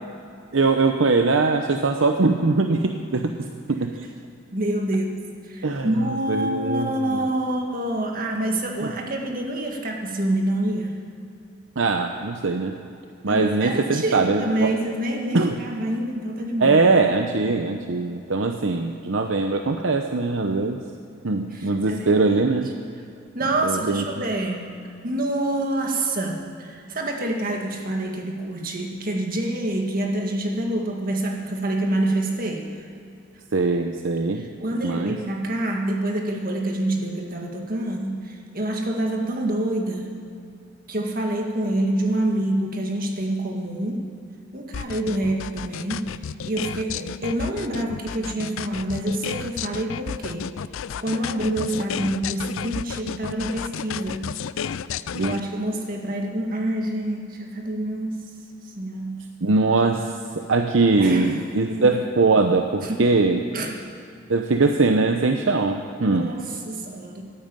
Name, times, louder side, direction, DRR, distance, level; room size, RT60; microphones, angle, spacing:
voice 1, 0.5-3.3 3.7-4.1 5.6-5.9 6.3-7.2 8.8-8.9 11.8-12.7 13.2-14.7 15.3-15.6 16.6-20.8 21.2-22.7 23.6-24.0 33.5-34.4 34.8-35.1 55.1-55.4 59.4-63.4 64.3-66.3, right 3 dB, 70° right, 5 dB, 0.8 m, -21 dB
voice 2, 4.5-11.0 13.3-16.8 21.5-22.4 23.3-24.7 25.0-32.7 34.4-40.2 40.9-44.0 44.5-46.1 46.4-50.5 51.0-54.3 55.2-58.2 58.7-59.2 61.0-61.3 61.7-62.0 62.8-63.1 63.5-63.7 66.0-67.2, right 1 dB, 45° right, 1 dB, 1.8 m, -27 dB
sound 1, 44.7-55.4, left 7 dB, 75° left, 0.4 m, -32 dB
14.5 x 9.1 x 9.0 m, 2.5 s
head